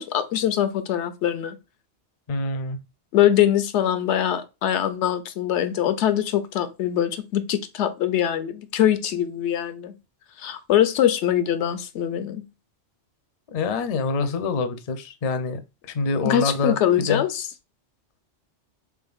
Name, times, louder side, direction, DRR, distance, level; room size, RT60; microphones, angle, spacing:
voice 1, 0.0-1.6 3.1-9.9 10.4-12.4 16.2-17.4, left 11 dB, 85° left, 0.9 m, -23 dB
voice 2, 2.3-2.8 13.5-17.2, left 3 dB, 50° left, 0.5 m, -26 dB
3.6 x 3.6 x 2.3 m
omnidirectional pair, 1.1 m